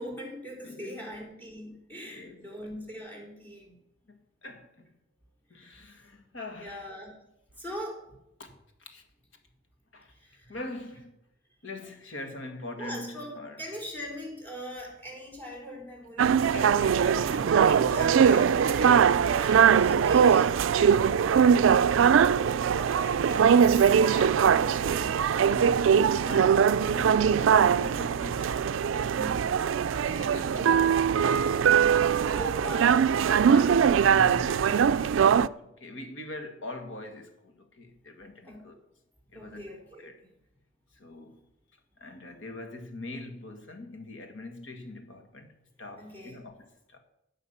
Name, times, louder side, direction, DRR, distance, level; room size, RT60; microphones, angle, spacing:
voice 1, 0.0-3.8 5.5-5.7 6.6-7.1 7.6-8.0 10.1-10.6 12.8-16.5 17.3-21.8 22.1-23.9 24.3-25.2 25.4-26.1 29.1-29.5 29.8-30.3 32.2-33.2 33.5-33.7 38.4-38.7 39.3-40.0 46.0-46.4, equal, 10° left, 4.0 m, -41 dB
voice 2, 0.6-1.1 2.0-2.5 4.1-4.9 5.5-6.9 8.4-8.5 8.8-9.0 9.9-10.2 10.5-11.2 11.6-13.6 16.4-18.6 24.0-25.0 25.3-29.4 29.9-32.7 33.4-38.8 39.3-39.6 40.0-40.1 40.9-41.5 42.0-45.5 45.8-47.0, left 2 dB, 70° left, 1.9 m, -43 dB
sound 1, 16.2-35.5, right 7 dB, 70° right, 0.3 m, -22 dB
16.5 x 6.5 x 5.7 m
head